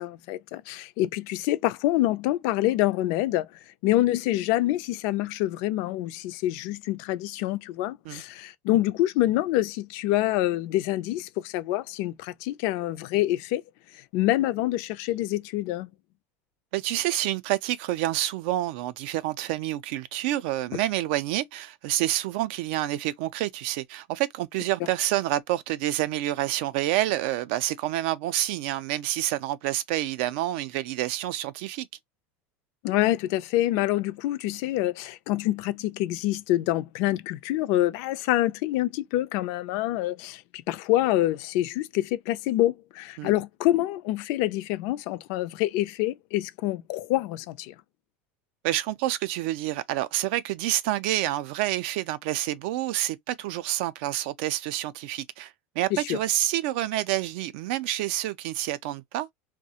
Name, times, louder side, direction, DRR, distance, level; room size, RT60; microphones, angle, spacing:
voice 1, 0.0-3.5 3.8-13.6 14.1-15.9 20.7-20.8 32.8-40.4 40.7-47.7 55.9-56.2, left 15 dB, 55° left, 0.4 m, -26 dB
voice 2, 16.7-31.9 43.2-43.3 48.6-59.3, right 14 dB, 65° right, 0.4 m, -28 dB
2.3 x 2.1 x 2.8 m
supercardioid pair, 155°, 7 cm